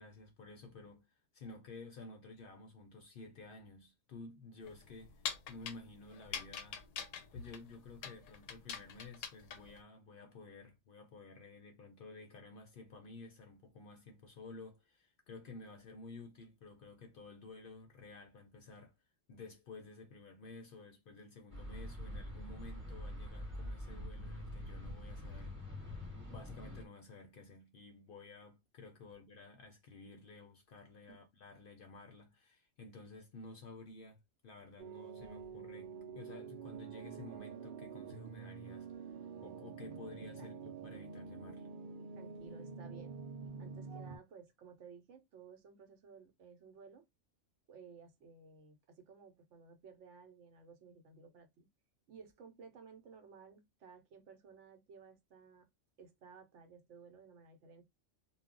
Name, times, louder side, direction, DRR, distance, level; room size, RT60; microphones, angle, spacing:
voice 1, 0.0-6.8 7.3-18.9 19.3-25.6 26.3-41.7, left 3 dB, 60° left, 0.6 m, -53 dB
sound 1, 4.6-9.8, left 7 dB, 85° left, 1.0 m, -44 dB
sound 2, 21.5-26.8, left 1 dB, 10° right, 1.1 m, -45 dB
sound 3, 34.8-44.2, right 5 dB, 60° right, 0.6 m, -47 dB
voice 2, 42.1-43.2 43.6-47.0 47.7-51.7 52.1-55.7 56.0-57.8, right 5 dB, 75° right, 0.9 m, -57 dB
2.3 x 2.0 x 3.6 m
omnidirectional pair, 1.3 m